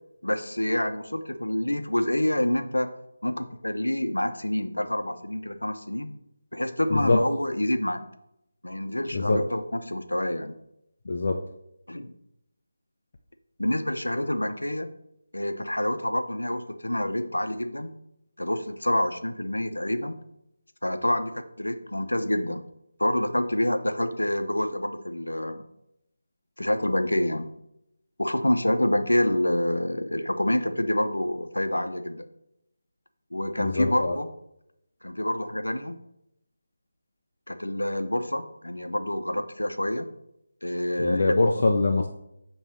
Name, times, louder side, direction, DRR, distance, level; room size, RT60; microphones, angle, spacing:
voice 1, 0.2-2.9 3.2-6.1 6.5-8.0 8.6-10.6 11.9-12.1 13.6-14.9 15.3-17.9 18.4-20.2 20.8-22.7 23.0-25.6 26.6-27.5 28.2-32.2 33.3-34.3 35.0-36.0 37.5-40.1 40.6-41.5, left 1 dB, 90° left, 8 dB, 0.9 m, -27 dB
voice 2, 6.9-7.2 9.1-9.4 11.1-11.4 33.6-34.1 41.0-42.1, left 3 dB, 50° left, 3 dB, 0.8 m, -23 dB
8.5 x 3.3 x 6.3 m, 0.80 s
figure-of-eight pair, 160°, 0 cm